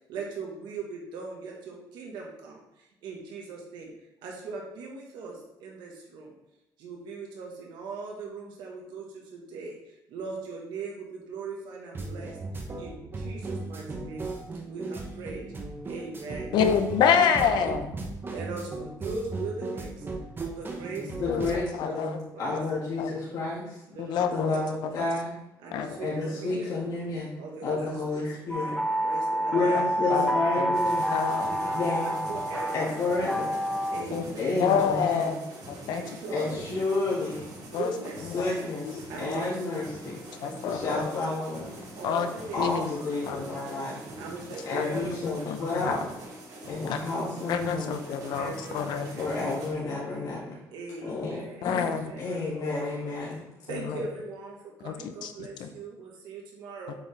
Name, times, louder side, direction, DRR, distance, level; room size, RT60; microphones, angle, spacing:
voice 1, 0.1-3.9 4.2-6.3 6.8-14.3 14.7-15.4 15.8-16.6 17.0-17.6 18.3-20.1 20.5-22.0 22.3-22.6 23.9-24.4 25.6-26.7 27.4-28.0 29.0-30.2 31.4-33.1 33.9-34.7 35.9-37.1 37.6-38.5 39.1-39.8 40.4-41.1 41.9-42.7 42.9-43.4 44.2-46.2 48.2-49.6 50.7-52.3 53.7-57.0, right 3 dB, 85° right, -1 dB, 1.3 m, -40 dB
sound 1, 11.9-21.5, right 3 dB, 30° right, 1.0 m, -36 dB
voice 2, 16.5-18.0 21.3-21.4 21.8-22.2 22.5-22.6 23.0-23.1 24.0-24.5 25.7-26.0 27.6-27.8 30.1-30.7 31.1-31.5 34.1-34.2 34.6-35.4 35.7-36.0 37.7-37.9 38.4-38.5 40.4-41.1 42.0-42.3 42.6-42.9 43.3-43.4 44.7-44.9 45.5-46.0 46.9-47.0 47.5-49.1 51.6-52.0 53.9-54.0 54.8-55.3 55.6-55.7, left 7 dB, 80° left, 7 dB, 0.7 m, -27 dB
voice 3, 21.2-23.8 24.3-25.4 26.0-27.3 27.6-28.8 29.5-31.0 31.5-32.2 32.7-33.5 34.4-35.4 36.3-37.4 38.3-40.2 40.7-41.7 42.5-44.0 44.6-46.1 46.6-48.0 49.2-50.6 51.0-51.9 52.2-53.4, left 3 dB, 55° left, -7 dB, 1.8 m, -30 dB
sound 2, 28.5-34.0, right 1 dB, ahead, 0.7 m, -28 dB
sound 3, 30.7-49.7, right 1 dB, 55° right, 2.6 m, -44 dB
7.5 x 4.7 x 3.3 m, 0.87 s
cardioid pair, 115°, 7 cm